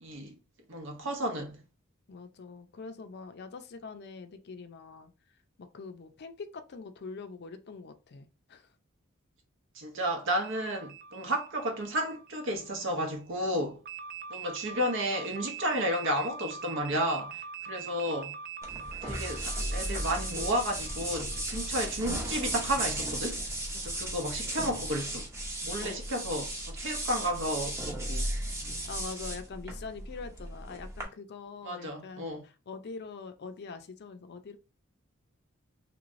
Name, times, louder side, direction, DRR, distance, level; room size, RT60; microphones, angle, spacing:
voice 1, 0.0-0.4 0.7-1.6 9.7-13.8 14.3-18.4 19.0-23.5 23.7-25.3 25.6-28.3 31.6-32.4, equal, 65° right, 0.8 m, -32 dB
voice 2, 2.1-5.1 5.6-8.7 25.8-26.0 28.8-34.6, left 4 dB, 55° left, 0.5 m, -44 dB
sound 1, 10.4-13.0 13.9-22.2, right 6 dB, 45° right, 0.3 m, -44 dB
sound 2, 18.6-31.0, right 1 dB, 15° right, 0.8 m, -35 dB
3.1 x 3.1 x 2.5 m
head